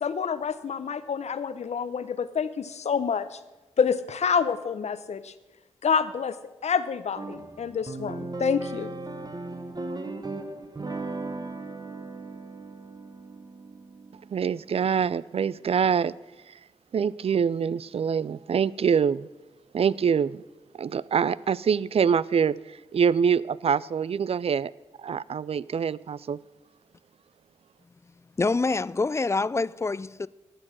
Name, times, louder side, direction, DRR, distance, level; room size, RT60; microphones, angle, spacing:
voice 1, 0.0-3.4 3.8-5.3 5.8-6.4 6.6-8.9, left 6 dB, 65° left, 0.8 m, -27 dB
sound 1, 7.2-15.6, right 3 dB, 35° right, 1.2 m, -37 dB
voice 2, 14.3-16.1 16.5-16.6 16.9-19.3 19.7-20.4 20.7-24.7 25.0-26.4, right 7 dB, 55° right, 0.4 m, -25 dB
voice 3, 28.4-30.3, left 3 dB, 20° left, 0.4 m, -26 dB
12.5 x 7.8 x 6.2 m
supercardioid pair, 45°, 12 cm